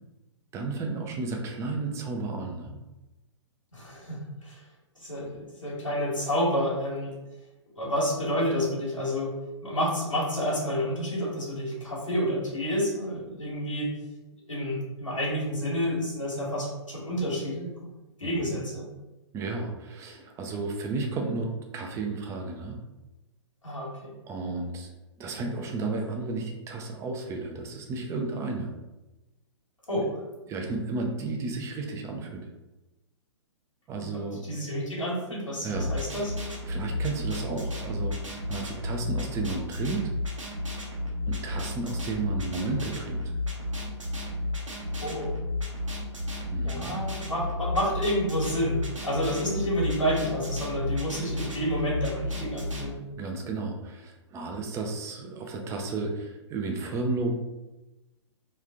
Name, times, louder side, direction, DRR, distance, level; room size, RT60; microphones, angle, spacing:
voice 1, 0.5-2.8 18.2-18.6 19.3-22.8 24.3-24.9 25.2-28.7 30.0-30.1 30.5-32.5 33.9-34.4 35.6-35.9 36.7-38.2 38.5-40.1 41.3-43.3 46.5-46.9 53.2-57.3, right 3 dB, 20° right, 2 dB, 0.6 m, -33 dB
voice 2, 3.7-4.6 5.0-7.1 7.7-9.3 9.6-13.9 14.5-17.7 18.2-18.9 23.6-24.1 29.9-30.1 33.9-36.3 44.9-45.3 46.6-53.0, equal, 90° left, -4 dB, 1.5 m, -29 dB
sound 1, 35.7-52.9, left 1 dB, 90° right, 1.0 m, -33 dB
3.2 x 3.2 x 3.7 m, 1.1 s
figure-of-eight pair, 120°, 16 cm